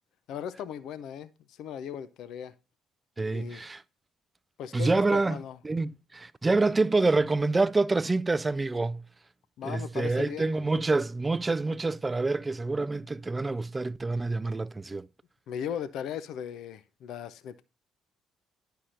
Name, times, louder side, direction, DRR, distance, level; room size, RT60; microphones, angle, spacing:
voice 1, 0.3-2.5 3.3-3.6 4.6-5.6 9.6-10.5 15.5-17.6, left 8 dB, 70° left, 0.4 m, -37 dB
voice 2, 3.2-3.8 4.7-5.4 5.6-9.0 9.6-15.1, right 3 dB, 25° right, 0.3 m, -27 dB
10.0 x 5.7 x 2.4 m
hypercardioid pair, 55°, 0 cm